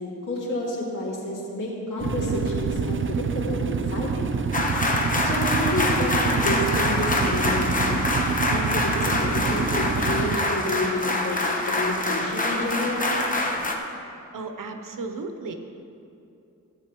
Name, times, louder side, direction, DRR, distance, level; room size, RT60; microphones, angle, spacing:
voice 1, 0.0-4.4 5.2-8.0 8.5-13.1, left 2 dB, 70° left, -6 dB, 2.6 m, -30 dB
sound 1, 2.0-10.4, right 5 dB, 40° right, 0.5 m, -27 dB
sound 2, 4.5-13.8, left 1 dB, 25° left, 1.0 m, -25 dB
voice 2, 14.3-15.5, right 3 dB, 75° right, 5 dB, 0.9 m, -34 dB
15.5 x 8.2 x 3.1 m, 2.7 s
cardioid pair, 70°, 33 cm